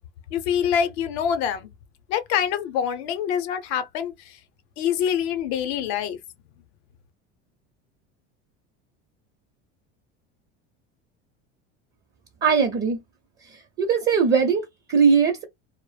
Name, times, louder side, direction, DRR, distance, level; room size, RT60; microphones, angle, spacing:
voice 1, 0.3-1.7 2.1-4.4 4.8-6.2, left 8 dB, 80° left, 0.7 m, -25 dB
voice 2, 12.4-13.0 13.8-15.4, right 6 dB, 35° right, 0.6 m, -20 dB
2.1 x 2.0 x 3.2 m
supercardioid pair, 105°, 32 cm